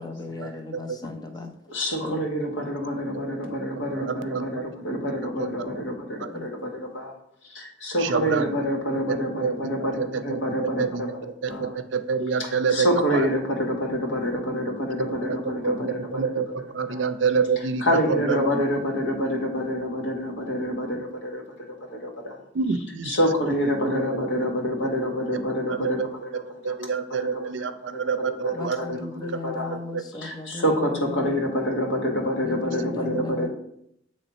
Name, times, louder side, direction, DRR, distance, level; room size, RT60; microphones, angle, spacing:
voice 1, 0.0-1.5 2.0-2.2 6.3-6.5 26.9-27.0 28.5-31.5 32.4-33.5, left 2 dB, 20° left, 5 dB, 0.6 m, -36 dB
voice 2, 1.7-7.1 7.4-11.1 11.5-11.7 12.4-16.3 16.9-17.1 17.8-21.7 21.9-22.4 23.0-27.4 27.9-28.0 28.3-28.5 28.8-29.8 30.2-33.5, equal, 85° left, 1 dB, 1.4 m, -27 dB
voice 3, 4.0-4.6 5.4-5.8 6.2-6.3 8.0-8.5 9.1-9.2 9.4-9.5 10.0-11.2 11.4-12.9 13.1-13.3 15.0-15.4 15.6-17.8 18.1-18.5 22.5-23.2 23.9-24.5 25.2-25.4 25.7-26.1 26.6-29.1 29.5-30.0 32.9-33.1, right 5 dB, 70° right, 10 dB, 0.5 m, -28 dB
8.0 x 3.2 x 4.1 m, 0.74 s
head